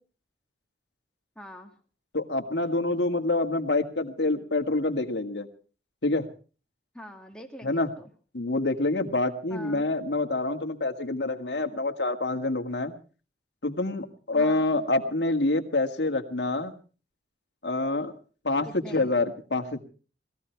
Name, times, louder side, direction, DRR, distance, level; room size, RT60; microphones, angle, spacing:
voice 1, 1.4-1.8 6.9-8.1 9.5-9.9 14.3-14.8 18.6-19.1, equal, 5° left, 3 dB, 2.1 m, -44 dB
voice 2, 2.1-5.5 6.0-6.3 7.6-7.9 8.3-12.9 13.6-16.7 17.6-18.1 18.4-19.8, left 2 dB, 75° left, 4 dB, 1.9 m, -27 dB
21.0 x 15.0 x 4.6 m, 0.39 s
head